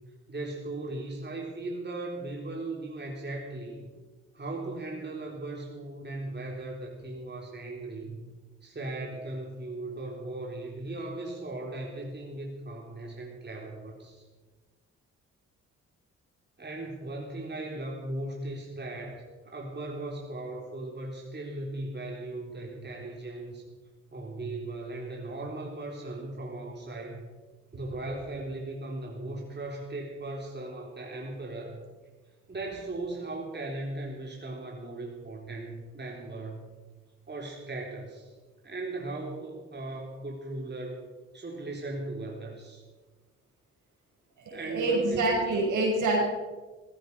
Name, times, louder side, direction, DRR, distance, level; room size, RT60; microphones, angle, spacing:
voice 1, 0.3-3.9 4.3-8.2 8.6-14.2 16.6-23.6 24.1-27.2 27.7-31.8 32.5-36.6 37.3-38.3 38.6-41.0 41.3-42.8 44.5-45.4, right 2 dB, 35° right, -1 dB, 3.8 m, -38 dB
voice 2, 44.4-46.2, right 2 dB, 70° right, -1 dB, 5.8 m, -26 dB
15.5 x 15.0 x 5.6 m, 1.3 s
supercardioid pair, 50°, 31 cm